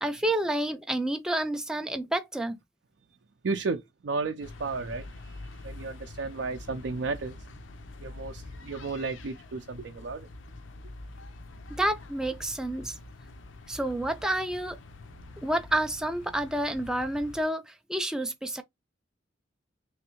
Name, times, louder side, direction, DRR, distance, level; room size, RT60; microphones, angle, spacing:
voice 1, 0.0-2.6 11.8-13.0 13.7-14.8 15.4-18.6, right 1 dB, 5° right, 0.4 m, -29 dB
voice 2, 3.4-7.4 8.0-10.3, right 4 dB, 65° right, 0.5 m, -33 dB
sound 1, 4.4-17.4, left 2 dB, 80° left, 0.6 m, -45 dB
3.3 x 3.2 x 2.9 m
head